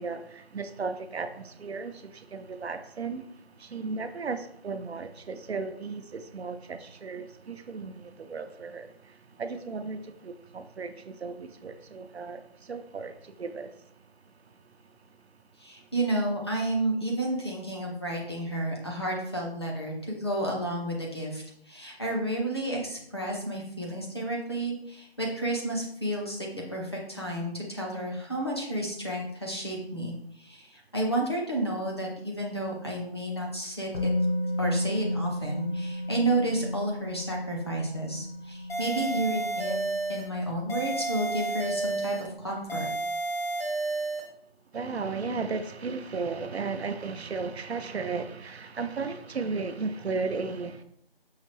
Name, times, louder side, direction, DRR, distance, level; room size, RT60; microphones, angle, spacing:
voice 1, 0.0-3.3 3.6-13.7 44.7-50.8, right 4 dB, 85° right, 0.6 m, -35 dB
voice 2, 15.6-34.1 34.6-39.8 40.1-42.9, right 1 dB, 25° left, 0.7 m, -31 dB
Musical instrument, 33.9-41.8 42.1-42.3, left 1 dB, 55° left, 1.0 m, -33 dB
sound 1, 38.7-40.3 40.7-42.3 42.7-44.3, right 2 dB, 70° left, 1.7 m, -31 dB
5.6 x 2.6 x 3.1 m
figure-of-eight pair, 165°, 32 cm